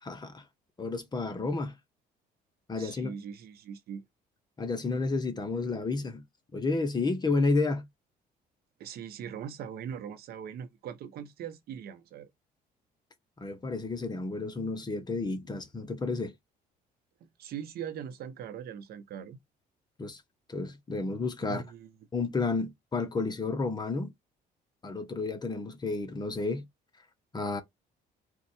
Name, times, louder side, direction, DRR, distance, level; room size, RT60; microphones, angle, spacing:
voice 1, 0.0-0.4 0.8-1.8 2.7-3.1 4.6-6.2 6.5-7.9 13.4-16.3 20.0-20.2 20.5-21.6 22.1-24.1 24.8-26.7 27.3-27.6, left 3 dB, 25° left, 1.0 m, -31 dB
voice 2, 2.7-4.0 8.8-12.3 17.4-19.4 21.4-21.9, right 8 dB, 65° right, 1.0 m, -41 dB
4.5 x 2.4 x 4.3 m
cardioid pair, 110°, 17 cm